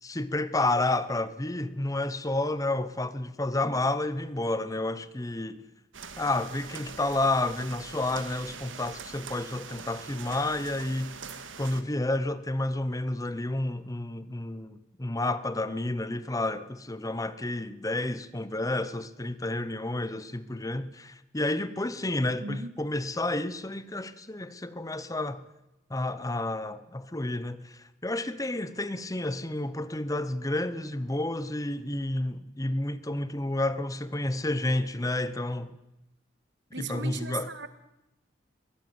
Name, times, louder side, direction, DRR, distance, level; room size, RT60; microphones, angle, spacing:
voice 1, 0.0-5.6 6.2-11.2 11.6-25.4 25.9-35.7 36.8-37.5, left 2 dB, 20° left, 0.9 m, -30 dB
sound 1, 5.9-11.8, right 6 dB, 90° right, 2.0 m, -43 dB
voice 2, 22.4-22.7 36.7-37.7, right 4 dB, 65° right, 1.9 m, -37 dB
22.5 x 17.0 x 9.5 m
head